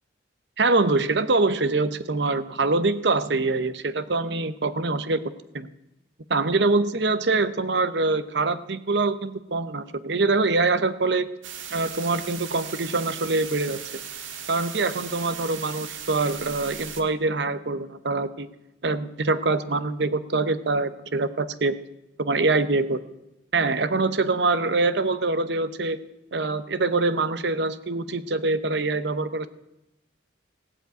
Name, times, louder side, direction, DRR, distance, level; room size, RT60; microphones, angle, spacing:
voice 1, 0.6-5.7 6.3-11.3 11.7-13.8 14.5-18.5 18.8-21.8 22.2-23.0 23.5-26.0 26.3-29.5, right 3 dB, 60° right, 13 dB, 0.8 m, -24 dB
sound 1, 11.4-17.0, right 8 dB, 85° right, 1.6 m, -38 dB
16.5 x 7.5 x 9.2 m, 0.90 s
head